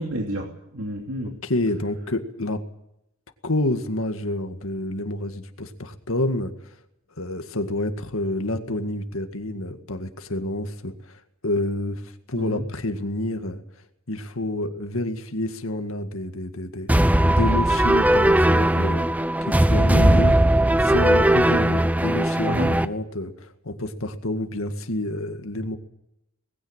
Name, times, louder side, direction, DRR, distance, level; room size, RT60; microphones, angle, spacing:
voice 1, 0.0-1.3 12.3-12.6 21.5-21.8 22.5-22.7, right 1 dB, 65° right, 1 dB, 2.8 m, -30 dB
voice 2, 1.2-2.6 3.4-6.7 7.2-13.6 14.1-19.0 19.5-20.4 20.8-25.8, left 1 dB, 70° left, 7 dB, 2.0 m, -28 dB
sound 1, 16.9-22.8, right 1 dB, 5° right, 0.7 m, -18 dB
20.0 x 16.0 x 9.0 m, 0.82 s
head